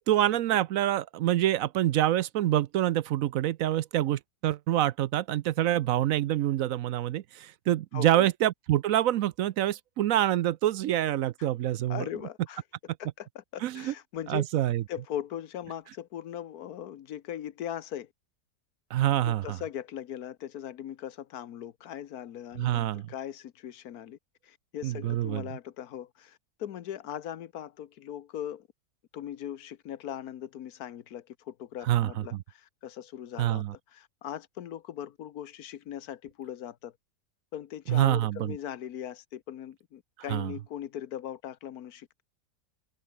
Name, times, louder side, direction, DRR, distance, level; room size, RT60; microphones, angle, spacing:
voice 1, 0.1-12.1 13.6-13.9 14.3-14.8 18.9-19.6 22.6-23.1 24.8-25.4 31.8-32.4 33.4-33.7 37.9-38.6 40.3-40.5, right 13 dB, 70° right, 0.9 m, -26 dB
voice 2, 7.9-8.3 11.9-12.6 13.0-14.5 14.9-18.1 19.2-24.2 24.4-28.7 29.1-36.9 37.5-42.2, left 10 dB, 80° left, 1.4 m, -39 dB
omnidirectional pair, 1.6 m